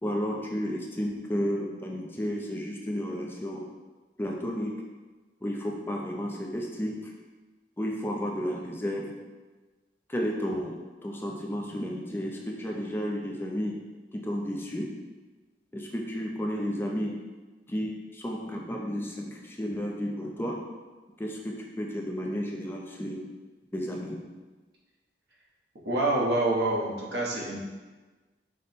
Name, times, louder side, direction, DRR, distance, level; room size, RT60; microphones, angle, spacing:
voice 1, 0.0-3.7 4.2-4.7 5.4-7.0 7.8-9.1 10.1-13.8 14.2-14.9 15.7-17.1 17.7-20.6 21.2-23.2 23.7-24.2, equal, 15° left, -1 dB, 0.4 m, -32 dB
voice 2, 25.8-27.6, right 2 dB, 70° right, -4 dB, 1.0 m, -26 dB
5.0 x 2.1 x 4.1 m, 1.3 s
head